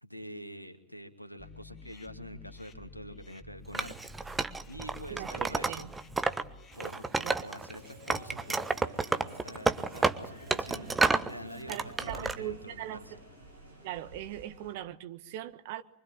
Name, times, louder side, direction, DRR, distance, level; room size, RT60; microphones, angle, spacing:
voice 1, 0.0-6.0 6.7-13.1, equal, 90° left, 2.3 m, -46 dB
sound 1, 1.4-6.8, left 1 dB, 25° left, 2.1 m, -50 dB
Wood, 3.7-6.4 6.7-7.8 8.1-11.3 11.7-12.4, right 3 dB, 10° right, 1.2 m, -30 dB
voice 2, 5.1-5.8 7.2-7.5 11.7-13.0 13.8-15.8, right 13 dB, 50° right, 1.5 m, -40 dB
sound 2, 6.7-14.7, right 2 dB, 80° right, 6.8 m, -49 dB
25.0 x 24.5 x 8.7 m
figure-of-eight pair, 90°, 0 cm